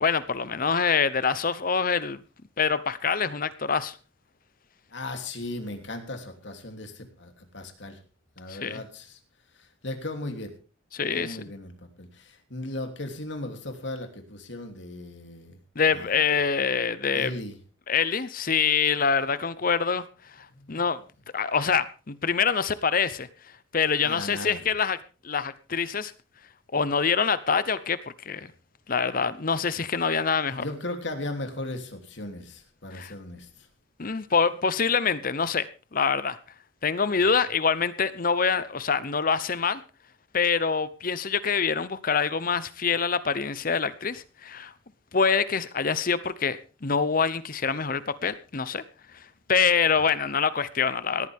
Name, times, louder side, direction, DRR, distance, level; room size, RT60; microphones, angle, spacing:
voice 1, 0.0-2.2 2.6-4.0 8.5-8.8 10.9-11.4 15.8-17.3 17.9-20.0 20.4-21.0 21.3-23.3 23.7-25.0 25.2-26.1 26.7-28.0 28.3-28.5 28.9-30.6 32.9-33.1 34.0-36.4 36.8-39.8 40.3-44.7 45.1-48.8 49.1-49.2 49.5-51.3, left 6 dB, 45° left, 15 dB, 0.8 m, -25 dB
voice 2, 4.9-8.0 8.4-9.2 9.5-10.5 11.1-15.6 15.9-16.3 17.1-17.6 20.5-20.8 24.0-24.7 30.5-33.7, left 2 dB, 60° left, 5 dB, 3.1 m, -37 dB
18.5 x 14.0 x 3.6 m, 0.34 s
head